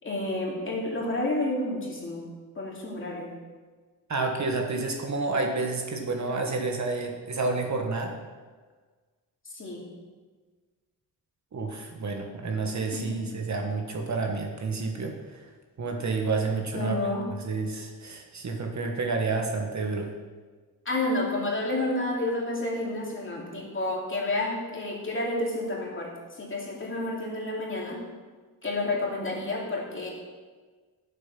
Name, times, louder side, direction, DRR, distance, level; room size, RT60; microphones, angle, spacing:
voice 1, 0.0-2.3 2.5-3.3 9.4-9.9 12.9-13.3 16.7-17.3 20.8-28.0 28.6-30.1, left 2 dB, 30° left, -3 dB, 2.6 m, -30 dB
voice 2, 4.1-8.1 11.5-15.5 15.8-20.1, right 3 dB, 45° right, 3 dB, 1.3 m, -30 dB
9.2 x 7.5 x 5.9 m, 1.4 s
wide cardioid pair, 120°, 39 cm